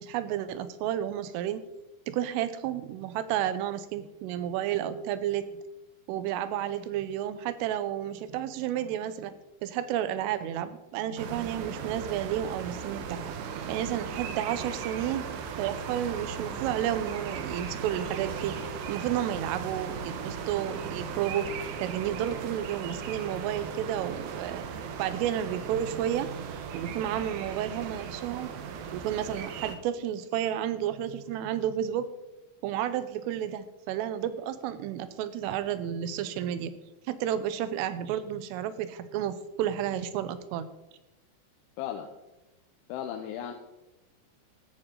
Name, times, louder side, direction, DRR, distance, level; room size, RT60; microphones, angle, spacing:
voice 1, 0.0-1.6 2.1-5.6 6.1-9.4 9.6-13.2 13.7-15.3 15.6-18.6 18.9-21.5 21.8-24.7 25.0-26.3 26.7-28.5 28.9-32.1 32.6-36.7 37.1-40.7, right 10 dB, 90° right, 13 dB, 3.4 m, -31 dB
sound 1, 11.2-29.8, right 6 dB, 75° right, 3.0 m, -37 dB
voice 2, 41.8-42.1 42.9-43.5, left 10 dB, 80° left, 3 dB, 3.2 m, -35 dB
16.5 x 11.0 x 3.8 m, 0.98 s
omnidirectional pair, 5.6 m